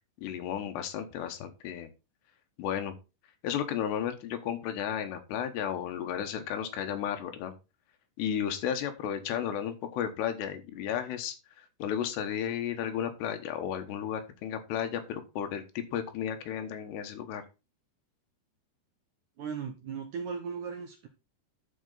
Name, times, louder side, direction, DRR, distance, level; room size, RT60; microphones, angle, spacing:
voice 1, 0.2-1.9 2.6-2.9 3.4-7.5 8.2-11.3 11.8-17.4, left 9 dB, 85° left, 7 dB, 3.4 m, -33 dB
voice 2, 19.4-21.1, right 6 dB, 70° right, 4 dB, 1.9 m, -37 dB
11.5 x 5.1 x 4.0 m, 0.28 s
omnidirectional pair, 4.8 m